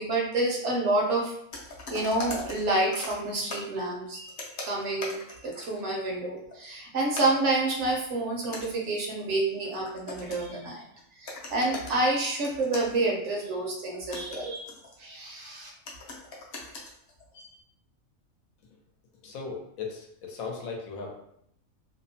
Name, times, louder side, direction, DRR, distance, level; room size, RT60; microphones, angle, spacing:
voice 1, 0.0-1.3 1.9-4.4 4.6-10.8 11.2-14.7 15.0-15.7, right 2 dB, 65° right, -1 dB, 0.8 m, -28 dB
sound 1, 1.5-3.7 4.3-5.9 6.4-6.7 7.1-10.7 11.0-11.1 11.3-12.1 12.4-13.0 13.8-15.2 15.9-17.6, left 2 dB, 60° left, 0.7 m, -41 dB
voice 2, 19.2-21.2, left 4 dB, 80° left, 1 dB, 1.1 m, -37 dB
2.7 x 2.0 x 2.7 m, 0.72 s
omnidirectional pair, 1.4 m